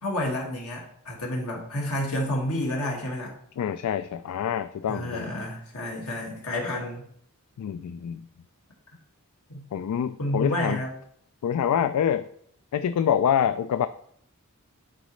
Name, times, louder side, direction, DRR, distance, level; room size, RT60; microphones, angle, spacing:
voice 1, 0.0-3.3 4.9-7.0 9.5-9.6 10.2-10.9, left 1 dB, 75° left, -1 dB, 1.9 m, -30 dB
voice 2, 3.6-5.3 7.6-8.3 9.7-10.8 11.4-12.3 12.7-13.9, left 8 dB, 90° left, 12 dB, 0.3 m, -26 dB
9.2 x 4.0 x 3.2 m, 0.65 s
head